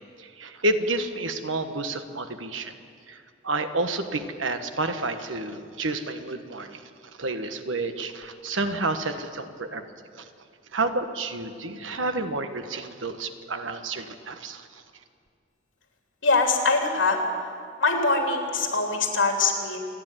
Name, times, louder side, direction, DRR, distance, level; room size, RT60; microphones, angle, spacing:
voice 1, 0.0-2.7 3.1-6.8 7.2-9.8 10.2-10.3 10.7-14.8, right 2 dB, 85° right, 8 dB, 1.4 m, -30 dB
voice 2, 16.2-17.2 17.8-19.8, left 3 dB, 75° left, 2 dB, 3.3 m, -23 dB
27.5 x 10.5 x 9.2 m, 2.3 s
head